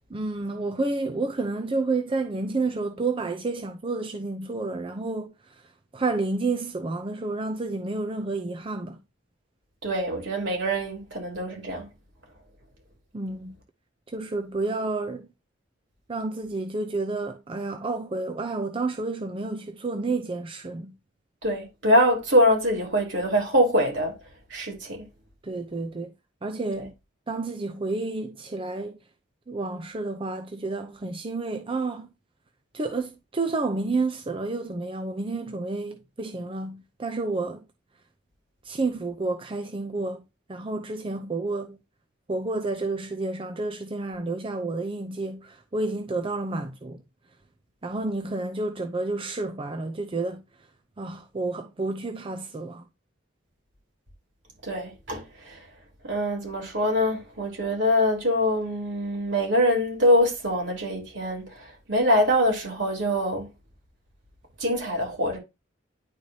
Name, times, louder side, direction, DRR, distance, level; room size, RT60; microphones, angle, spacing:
voice 1, 0.1-5.6 5.9-9.0 13.1-13.5 14.1-15.3 16.1-20.9 25.4-26.1 26.4-26.9 27.3-29.0 29.5-32.1 32.7-37.6 38.6-40.2 40.5-41.8 42.3-47.0 47.8-50.4 51.0-52.8, right 3 dB, 25° right, 0.5 m, -30 dB
voice 2, 9.8-11.9 21.4-24.1 24.5-25.0 26.8-26.9 54.6-55.5 56.0-61.5 61.9-63.5 64.6-65.4, equal, 65° right, 3.4 m, -24 dB
10.5 x 4.5 x 2.8 m
head